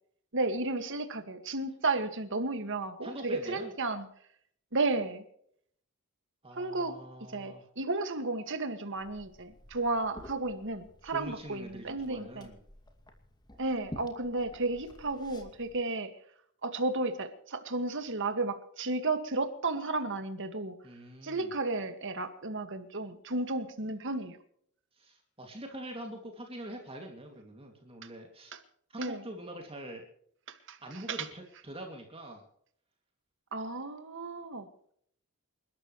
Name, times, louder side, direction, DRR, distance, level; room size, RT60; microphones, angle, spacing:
voice 1, 0.3-4.1 4.7-5.2 6.6-6.9 7.3-12.5 13.6-16.1 16.6-20.7 21.2-24.4 28.5-28.6 29.0-29.2 30.5-30.8 31.1-31.3 33.5-34.7, right 3 dB, 55° right, 7 dB, 2.0 m, -33 dB
voice 2, 3.0-3.7 6.4-7.6 11.1-12.6 20.8-21.5 24.9-28.5 28.9-30.0 30.8-32.4, right 1 dB, 25° right, 2 dB, 2.5 m, -44 dB
Liquid, 9.0-15.7, equal, 20° left, 2.4 m, -51 dB
28.5 x 13.0 x 3.2 m, 0.66 s
head